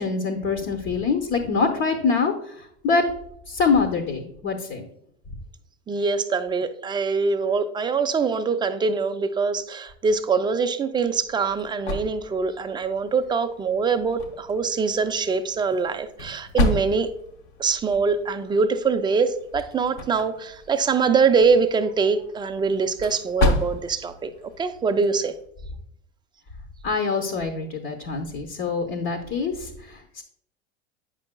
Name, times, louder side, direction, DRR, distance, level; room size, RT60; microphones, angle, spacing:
voice 1, 0.0-3.1 3.5-4.8 26.8-30.2, left 4 dB, 45° left, 3 dB, 1.0 m, -25 dB
voice 2, 5.9-17.1 17.6-24.3 24.6-25.3, right 5 dB, 15° right, 9 dB, 0.4 m, -23 dB
sound 1, 10.9-25.5, left 2 dB, 75° left, 1.2 m, -32 dB
8.8 x 5.2 x 2.2 m, 0.71 s
hypercardioid pair, 105°, 33 cm